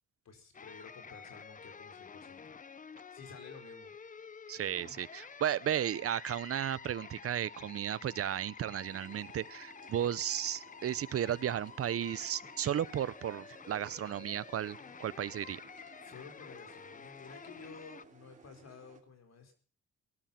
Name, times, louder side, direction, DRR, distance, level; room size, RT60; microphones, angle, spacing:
voice 1, 0.2-2.6 3.1-3.9 16.0-19.5, left 5 dB, 60° left, 5 dB, 4.7 m, -52 dB
sound 1, 0.5-18.0, left 6 dB, 25° left, 0.7 m, -50 dB
voice 2, 4.5-15.6, right 10 dB, 50° right, 20 dB, 0.7 m, -34 dB
sound 2, 8.8-19.0, right 4 dB, 25° right, 3.1 m, -60 dB
19.0 x 12.0 x 5.9 m, 0.41 s
cardioid pair, 90°, 30 cm